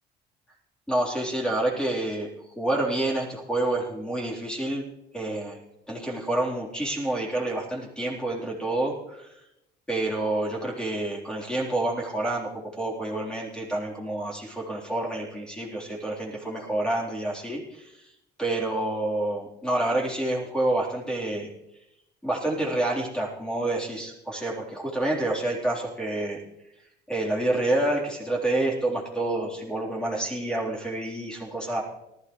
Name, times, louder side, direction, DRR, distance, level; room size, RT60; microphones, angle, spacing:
voice 1, 0.9-2.3 2.6-4.8 5.1-5.6 5.9-9.3 9.9-12.5 12.8-18.0 18.4-21.5 22.2-26.4 27.1-31.8, right 2 dB, 5° left, -4 dB, 3.9 m, -28 dB
19.0 x 13.5 x 3.3 m, 0.87 s
cardioid pair, 110°, 17 cm